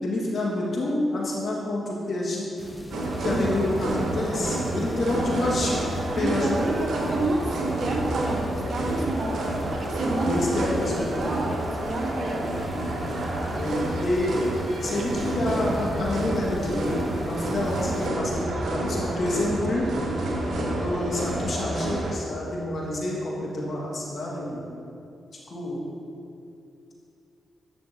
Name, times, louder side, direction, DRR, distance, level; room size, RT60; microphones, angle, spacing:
voice 1, 0.0-2.5 3.2-5.7 6.2-6.7 10.2-11.2 13.5-14.4 14.8-17.0 17.2-19.9 20.7-24.6 25.5-25.8, left 1 dB, 60° left, -4 dB, 1.6 m, -28 dB
sound 1, 2.6-18.1, left 1 dB, 20° left, 0.6 m, -41 dB
sound 2, 2.9-22.1, right 1 dB, 75° right, 1.0 m, -29 dB
voice 2, 6.1-9.4 9.7-12.5, right 2 dB, 55° right, -1 dB, 1.3 m, -29 dB
10.5 x 6.1 x 2.8 m, 2.7 s
supercardioid pair, 55°, 0 cm